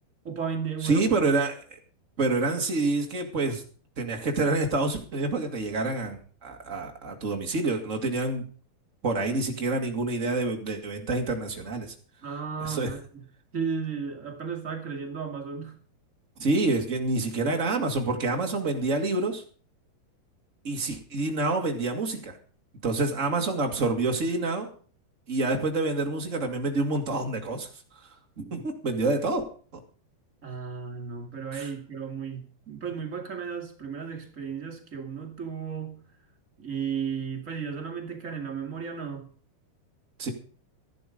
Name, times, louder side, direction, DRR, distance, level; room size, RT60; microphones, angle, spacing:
voice 1, 0.2-1.1 12.2-13.2 13.5-15.8 30.4-36.0 36.6-39.3, right 6 dB, 35° right, 1.4 m, -34 dB
voice 2, 0.8-1.6 2.2-3.6 4.0-8.4 9.0-11.9 12.6-12.9 16.4-19.4 20.6-22.4 22.8-24.7 25.3-27.7 28.4-29.4 31.5-31.7 40.2-40.3, right 3 dB, 85° right, 0.6 m, -27 dB
13.5 x 11.0 x 5.1 m
omnidirectional pair, 4.8 m